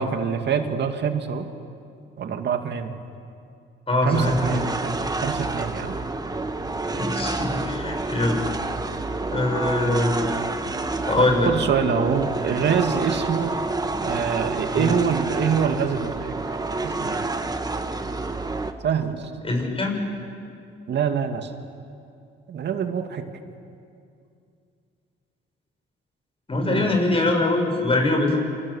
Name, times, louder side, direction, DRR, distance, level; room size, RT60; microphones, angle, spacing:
voice 1, 0.0-1.5 2.2-3.0 4.0-6.0 11.2-13.6 14.0-16.6 16.8-17.3 18.8-19.4 20.9-21.5 22.5-23.2 26.6-27.0, right 7 dB, 60° right, 6 dB, 2.4 m, -25 dB
voice 2, 3.9-4.4 6.9-8.5 9.3-10.4 11.0-11.5 14.7-14.9 19.4-20.0 26.5-28.4, left 2 dB, 30° left, 2 dB, 7.0 m, -23 dB
sound 1, 4.1-18.7, right 3 dB, 20° right, 1.7 m, -28 dB
28.0 x 27.5 x 7.4 m, 2.5 s
cardioid pair, 90°, 20 cm